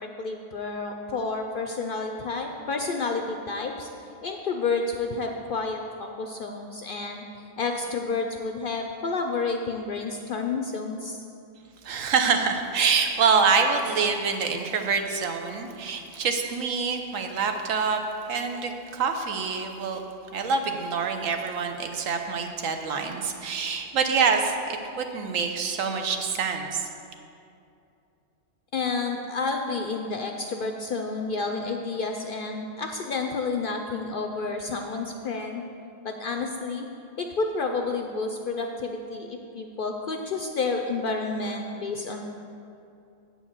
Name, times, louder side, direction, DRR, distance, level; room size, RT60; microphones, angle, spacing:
voice 1, 0.0-3.9 4.2-11.2 28.7-35.6 36.0-36.9 37.2-42.2, left 4 dB, 60° left, 4 dB, 0.5 m, -30 dB
voice 2, 11.8-20.0 20.3-26.9, right 5 dB, 85° right, 5 dB, 1.2 m, -26 dB
8.4 x 4.5 x 7.2 m, 2.6 s
omnidirectional pair, 1.3 m